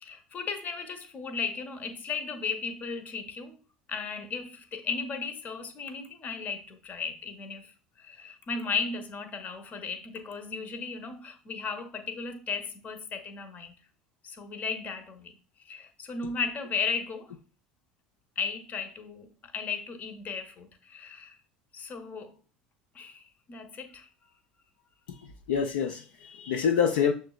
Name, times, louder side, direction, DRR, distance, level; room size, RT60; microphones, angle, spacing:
voice 1, 0.0-3.6 3.9-7.7 8.0-13.7 14.2-15.3 15.7-17.3 18.4-21.4 21.7-22.3 22.9-24.1, left 5 dB, 40° left, 0.8 m, -35 dB
voice 2, 25.1-27.1, left 7 dB, 75° left, 0.4 m, -27 dB
6.4 x 3.2 x 2.3 m
hypercardioid pair, 75°, 4 cm